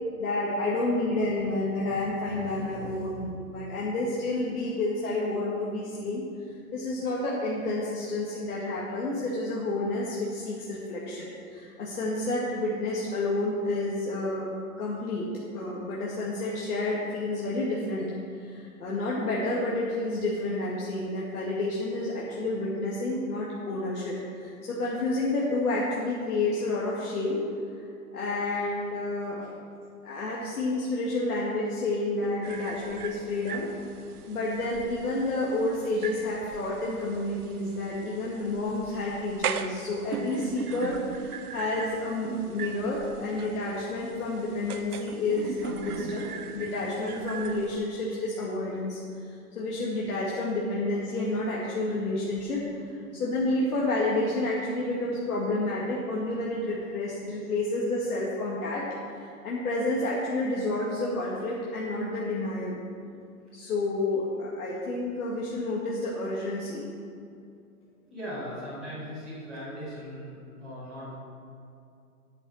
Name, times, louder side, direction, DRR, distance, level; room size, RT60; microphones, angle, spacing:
voice 1, 0.2-6.2 6.7-14.5 14.8-15.3 15.5-27.4 28.1-29.6 30.0-33.7 34.3-62.8 63.5-66.8, left 2 dB, 75° left, -5 dB, 2.1 m, -30 dB
sound 1, 32.4-47.8, right 7 dB, 75° right, 0.8 m, -39 dB
voice 2, 68.1-71.1, equal, ahead, -21 dB, 0.5 m, -39 dB
9.4 x 7.3 x 6.3 m, 2.4 s
hypercardioid pair, 160°, 45 cm